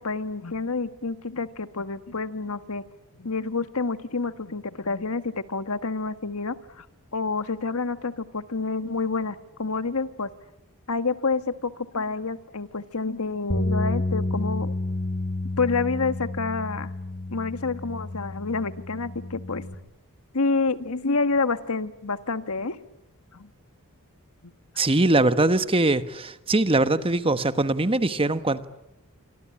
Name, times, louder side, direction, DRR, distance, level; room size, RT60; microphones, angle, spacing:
voice 1, 0.0-2.8 3.2-6.9 7.1-10.3 10.9-14.7 15.6-16.9 17.3-19.6 20.3-22.8 23.3-23.5 24.4-24.5, left 4 dB, 75° left, 1.5 m, -28 dB
sound 1, 13.5-19.7, left 2 dB, 50° left, 4.8 m, -30 dB
voice 2, 24.8-28.6, right 2 dB, 25° right, 1.2 m, -22 dB
27.5 x 24.5 x 8.7 m
head